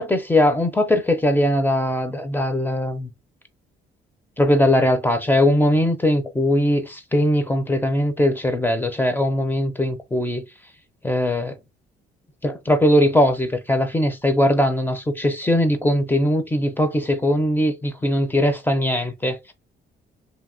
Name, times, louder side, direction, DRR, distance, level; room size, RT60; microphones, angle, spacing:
voice 1, 0.0-3.1 4.4-10.4 11.0-11.6 12.4-19.5, left 1 dB, 10° left, 0.6 m, -20 dB
2.8 x 2.7 x 2.6 m
cardioid pair, 90°, 20 cm